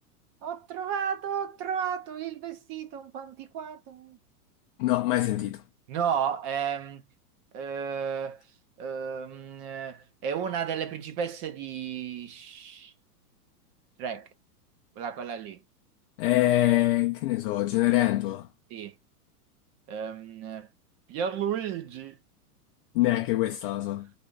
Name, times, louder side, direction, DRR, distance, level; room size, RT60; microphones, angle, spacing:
voice 1, 0.4-4.2 5.9-7.0 7.5-8.4 8.8-12.9 14.0-14.3 15.0-15.6 18.7-18.9 19.9-20.7 21.1-22.2, right 7 dB, 35° right, 0.8 m, -33 dB
voice 2, 4.8-5.6 16.2-18.5 22.9-24.1, left 16 dB, 40° left, 0.4 m, -24 dB
3.4 x 2.4 x 3.9 m
hypercardioid pair, 135°, 47 cm